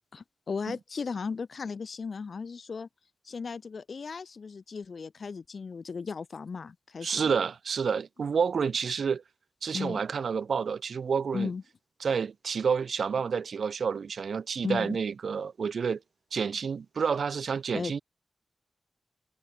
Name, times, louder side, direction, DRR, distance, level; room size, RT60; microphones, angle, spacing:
voice 1, 0.5-2.9 3.2-7.3 9.7-10.0 11.3-11.6 14.6-15.0 17.7-17.9, left 5 dB, 55° left, 1.3 m, -36 dB
voice 2, 7.0-9.2 9.6-11.5 12.0-16.0 16.3-18.0, right 6 dB, 75° right, 0.6 m, -29 dB
wide cardioid pair, 110°, 0 cm